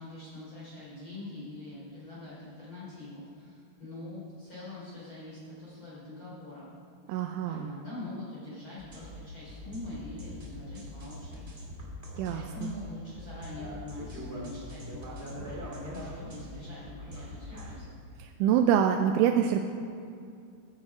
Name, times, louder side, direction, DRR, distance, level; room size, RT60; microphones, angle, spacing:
voice 1, 0.0-6.7 7.1-7.2 7.4-11.4 12.2-17.9, left 2 dB, 30° left, -8 dB, 3.8 m, -44 dB
voice 2, 7.1-7.7 12.2-12.7 18.4-19.7, right 9 dB, 90° right, 4 dB, 3.1 m, -25 dB
sound 1, 8.8-17.8, equal, 60° right, 0.6 m, -42 dB
15.0 x 10.0 x 4.8 m, 2.4 s
omnidirectional pair, 5.5 m